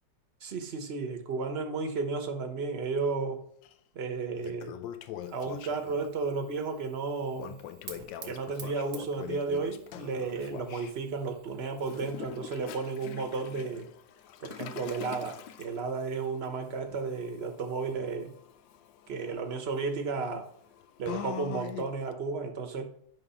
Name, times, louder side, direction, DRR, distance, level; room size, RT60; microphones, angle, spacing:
voice 1, 0.4-3.4 3.9-4.7 5.3-7.6 8.2-13.9 14.4-18.3 19.1-20.5 21.0-22.9, right 4 dB, 40° right, 5 dB, 1.1 m, -33 dB
Toilet flush, 3.6-3.7 4.2-6.1 7.3-10.9 11.8-22.1, left 11 dB, 80° left, 1.3 m, -44 dB
Fire, 5.2-12.7, right 7 dB, 80° right, 1.8 m, -52 dB
10.5 x 3.7 x 5.6 m, 0.65 s
omnidirectional pair, 2.0 m